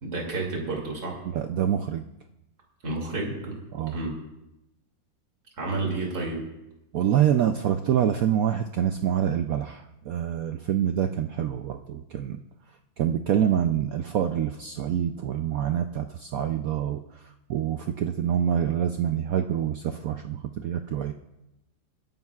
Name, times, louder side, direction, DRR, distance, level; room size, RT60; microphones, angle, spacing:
voice 1, 0.0-1.2 2.8-3.5 3.9-4.2 5.6-6.5, right 3 dB, 50° right, -1 dB, 3.1 m, -30 dB
voice 2, 1.3-2.0 3.7-4.0 6.9-12.4 13.0-17.0 17.5-21.1, right 9 dB, 80° right, 7 dB, 0.7 m, -26 dB
28.5 x 11.0 x 2.4 m, 0.93 s
omnidirectional pair, 2.1 m